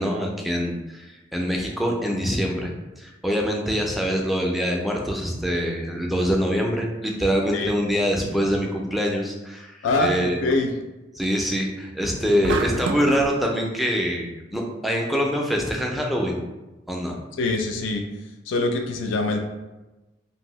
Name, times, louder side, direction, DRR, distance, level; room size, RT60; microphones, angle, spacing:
voice 1, 0.0-10.4 11.2-16.4 16.9-17.2, equal, ahead, -1 dB, 0.3 m, -24 dB
voice 2, 9.8-10.7 17.4-18.0 18.5-19.4, left 2 dB, 75° left, 4 dB, 0.3 m, -23 dB
sound 1, 12.4-13.3, right 4 dB, 85° right, 0.3 m, -27 dB
2.6 x 2.6 x 3.0 m, 1.1 s
head